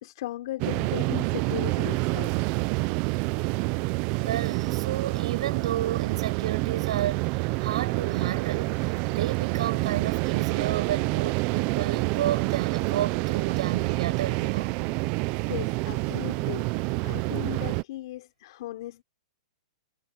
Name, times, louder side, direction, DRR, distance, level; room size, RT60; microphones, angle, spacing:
voice 1, 0.0-2.3 15.5-19.0, left 15 dB, 45° left, 3.7 m, -37 dB
sound 1, 0.6-17.8, right 24 dB, 25° right, 0.5 m, -27 dB
voice 2, 4.2-14.8, right 11 dB, 60° right, 6.3 m, -32 dB
hypercardioid pair, 170°, 4 cm